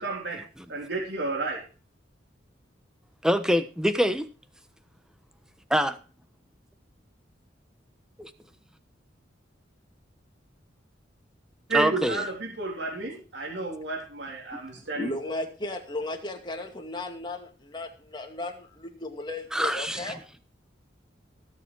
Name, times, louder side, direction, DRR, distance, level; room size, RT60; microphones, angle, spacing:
voice 1, 0.0-0.4 0.7-1.6 11.7-15.1, right 3 dB, 65° right, 0 dB, 3.4 m, -31 dB
voice 2, 3.2-4.3 5.7-6.0 8.2-8.3 11.7-12.2 19.5-20.1, equal, 5° right, 10 dB, 1.0 m, -25 dB
voice 3, 15.0-20.4, left 2 dB, 25° left, 3 dB, 2.3 m, -35 dB
17.5 x 7.1 x 4.6 m, 0.36 s
head